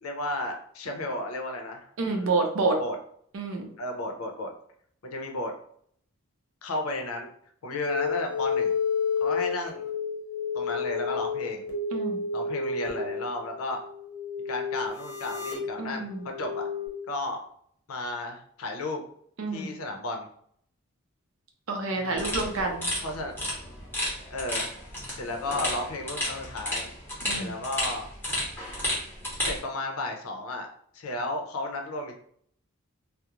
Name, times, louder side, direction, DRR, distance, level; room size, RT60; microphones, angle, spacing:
voice 1, 0.0-2.4 2.8-3.0 3.8-4.5 5.0-5.5 6.6-7.3 7.6-8.8 9.2-9.8 10.5-11.7 12.3-13.8 14.5-16.1 16.4-16.6 17.1-17.4 17.9-19.0 19.5-20.3 21.9-22.3 23.0-23.6 24.3-24.7 25.1-26.9 27.4-28.1 29.4-30.7 30.9-32.2, left 2 dB, 85° left, 3 dB, 0.5 m, -33 dB
voice 2, 2.0-2.8 3.3-3.7 11.9-12.2 15.8-16.2 19.4-19.7 21.7-22.9 27.2-27.5, right 3 dB, 75° right, 3 dB, 0.5 m, -28 dB
sound 1, 7.7-16.9, left 5 dB, 50° left, 0.7 m, -31 dB
sound 2, 22.2-29.6, left 1 dB, 10° left, 0.7 m, -32 dB
2.3 x 2.0 x 2.9 m, 0.64 s
head